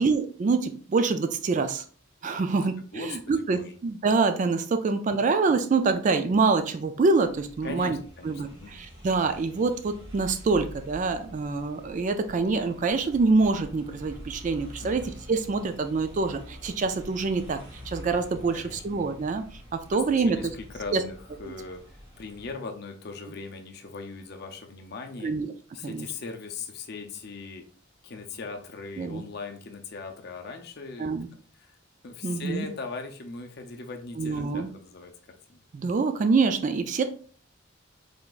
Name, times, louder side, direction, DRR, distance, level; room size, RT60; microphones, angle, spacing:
voice 1, 0.0-1.8 2.2-8.0 8.2-17.6 17.9-20.5 20.9-21.0 21.4-21.5 25.2-25.5 25.8-26.1 29.0-29.2 31.0-31.3 32.2-32.7 34.2-34.7 35.7-37.0, right 4 dB, 40° right, 9 dB, 0.3 m, -26 dB
voice 2, 2.9-3.8 7.6-8.7 14.8-15.1 18.5-18.8 19.9-21.9 22.2-25.3 25.7-27.6 28.0-31.1 31.5-31.8 32.0-35.1 35.5-35.6, left 4 dB, 50° left, 4 dB, 0.5 m, -39 dB
sound 1, 7.2-22.5, equal, 20° right, 1.4 m, -46 dB
3.8 x 3.4 x 2.4 m, 0.43 s
head